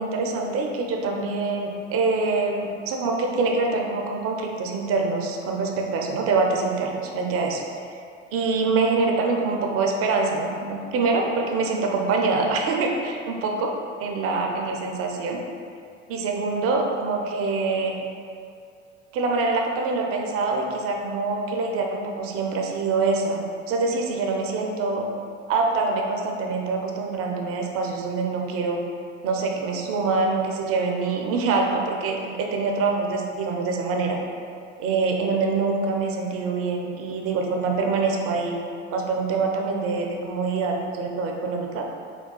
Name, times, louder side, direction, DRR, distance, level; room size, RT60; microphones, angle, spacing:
voice 1, 0.0-7.6 7.9-8.0 8.3-13.7 14.0-15.4 16.1-18.0 19.1-23.4 23.7-25.1 25.5-28.8 29.2-34.2 34.8-38.6 38.9-41.9, right 3 dB, 40° right, 1 dB, 0.4 m, -25 dB
3.7 x 2.2 x 2.2 m, 2.4 s
hypercardioid pair, 75°, 37 cm